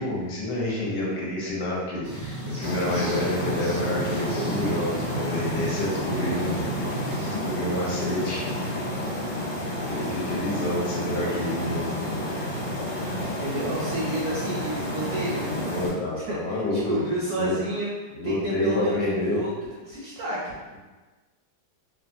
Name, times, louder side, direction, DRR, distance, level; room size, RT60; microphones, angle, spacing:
voice 1, 0.0-6.7 7.4-8.4 9.8-11.9 15.7-16.9 17.3-17.5 18.1-19.4, left 1 dB, 70° left, -4 dB, 1.2 m, -28 dB
sound 1, 2.0-7.3, right 3 dB, 20° left, 0.5 m, -35 dB
sound 2, 2.6-15.9, left 1 dB, 50° left, 1.1 m, -30 dB
voice 2, 13.4-15.7 16.2-19.5 19.9-20.5, right 1 dB, 75° right, -6 dB, 0.9 m, -31 dB
3.0 x 2.0 x 2.6 m, 1.3 s
omnidirectional pair, 2.0 m